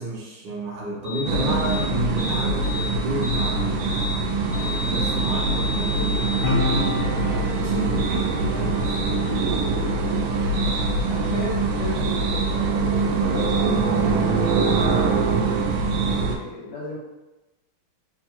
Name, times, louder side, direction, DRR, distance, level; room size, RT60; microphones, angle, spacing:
voice 1, 0.0-7.0 7.5-9.4 14.9-15.2, right 1 dB, 70° right, -3 dB, 1.4 m, -32 dB
sound 1, 1.0-1.2 1.6-1.9 2.2-2.9 3.2-3.5 3.9-4.2 4.5-6.5, left 3 dB, 20° right, 0.6 m, -32 dB
sound 2, 1.3-16.4, right 3 dB, 85° right, 1.5 m, -23 dB
Piano, 6.4-13.5 13.7-14.0, left 4 dB, 85° left, 1.5 m, -33 dB
voice 2, 11.0-14.3 16.0-17.0, left 2 dB, 70° left, -6 dB, 0.9 m, -35 dB
3.7 x 2.0 x 4.3 m, 1.0 s
omnidirectional pair, 2.4 m